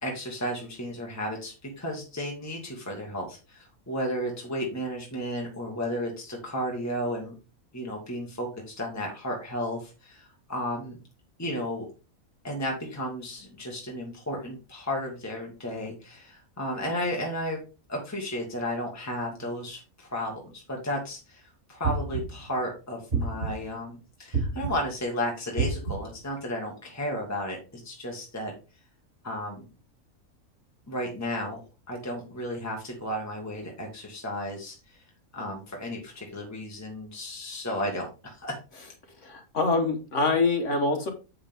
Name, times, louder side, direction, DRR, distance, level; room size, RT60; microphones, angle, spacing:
voice 1, 0.0-7.3 7.7-11.0 11.4-11.9 12.4-17.6 17.9-28.5 29.2-29.6 30.9-31.6 31.9-35.0 35.3-38.6, equal, 10° left, -1 dB, 1.8 m, -33 dB
sound 1, 21.8-22.5 23.1-23.8 24.3-25.0 25.6-26.2, right 4 dB, 45° right, 4.3 m, -29 dB
voice 2, 39.2-41.1, left 3 dB, 60° left, 4 dB, 1.5 m, -25 dB
8.0 x 6.6 x 3.5 m, 0.32 s
omnidirectional pair, 1.4 m